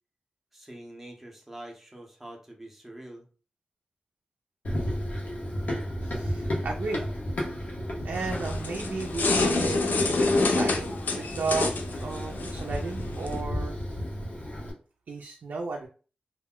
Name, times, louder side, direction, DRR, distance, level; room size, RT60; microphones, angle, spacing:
voice 1, 0.5-3.3, right 1 dB, 5° right, 0.6 m, -45 dB
Run, 4.6-14.7, equal, 55° left, 0.7 m, -33 dB
voice 2, 6.0-7.1 7.6-7.7 8.0-10.9 11.1-13.8 15.1-15.9, right 4 dB, 75° right, 0.4 m, -34 dB
sound 1, 8.1-13.4, left 3 dB, 85° left, 0.5 m, -27 dB
2.1 x 2.1 x 3.6 m
wide cardioid pair, 145°, 3 cm